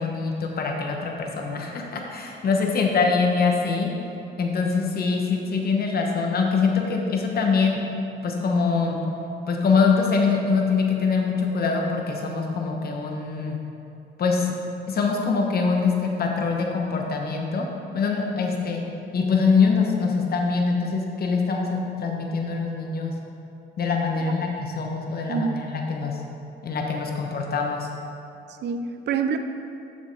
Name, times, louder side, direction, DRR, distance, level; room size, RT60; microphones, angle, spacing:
voice 1, 0.0-3.9 4.4-7.8 8.2-9.0 9.5-13.6 14.2-14.5 14.9-17.7 17.9-18.8 19.1-23.1 23.8-26.2 26.6-27.9, left 5 dB, 50° left, 1 dB, 1.0 m, -24 dB
voice 2, 25.3-25.7 28.6-29.4, right 6 dB, 60° right, 8 dB, 0.5 m, -26 dB
7.3 x 6.2 x 3.2 m, 2.7 s
cardioid pair, 90°, 20 cm